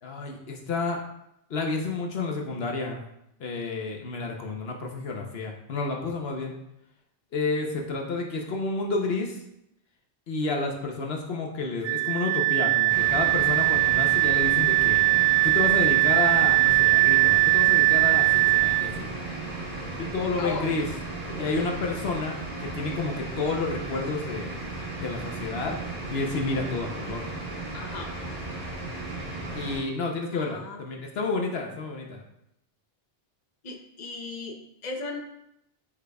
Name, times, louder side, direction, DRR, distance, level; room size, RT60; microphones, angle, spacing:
voice 1, 0.0-1.0 1.5-3.0 3.4-6.5 7.3-9.4 10.3-15.0 15.4-19.1 20.0-20.9 21.4-24.6 25.0-25.8 26.1-27.2 29.5-32.2, left 3 dB, 75° left, 1 dB, 1.0 m, -30 dB
Wind instrument woodwind instrument, 11.8-18.9, right 25 dB, 85° right, 1.0 m, -21 dB
sound 1, 12.9-29.8, right 2 dB, 50° right, 2.7 m, -35 dB
voice 2, 20.4-20.7 21.3-21.6 27.7-28.1 30.3-30.8 33.6-35.2, left 3 dB, 45° left, 1 dB, 0.9 m, -36 dB
8.7 x 4.9 x 2.3 m, 0.80 s
omnidirectional pair, 1.1 m